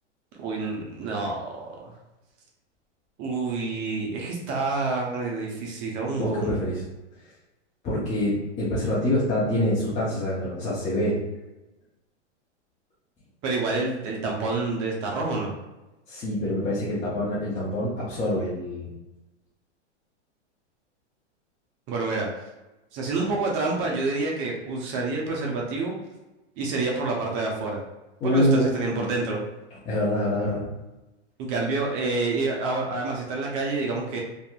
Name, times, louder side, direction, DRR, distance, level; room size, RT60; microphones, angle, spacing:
voice 1, 0.4-1.9 3.2-6.5 13.4-15.5 21.9-22.3 22.9-25.9 26.6-27.8 28.2-29.4 31.4-34.2, right 3 dB, 35° right, -1 dB, 0.5 m, -28 dB
voice 2, 6.2-6.8 7.8-11.2 16.1-18.9 28.2-29.1 29.9-30.7, left 1 dB, 20° left, -7 dB, 0.5 m, -25 dB
2.7 x 2.4 x 2.2 m, 1.0 s
hypercardioid pair, 130°, 36 cm